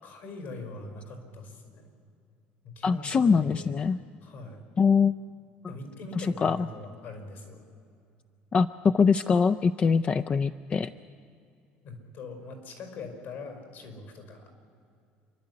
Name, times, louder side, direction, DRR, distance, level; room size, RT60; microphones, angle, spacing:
voice 1, 0.0-1.9 2.6-3.8 4.2-4.6 5.7-7.6 11.8-14.5, left 3 dB, 65° left, 6 dB, 5.3 m, -42 dB
voice 2, 2.8-4.0 4.8-5.2 5.6-5.7 6.2-6.7 8.5-10.9, left 5 dB, 30° left, 11 dB, 0.4 m, -23 dB
28.0 x 11.5 x 9.7 m, 2.4 s
cardioid pair, 120°, 4 cm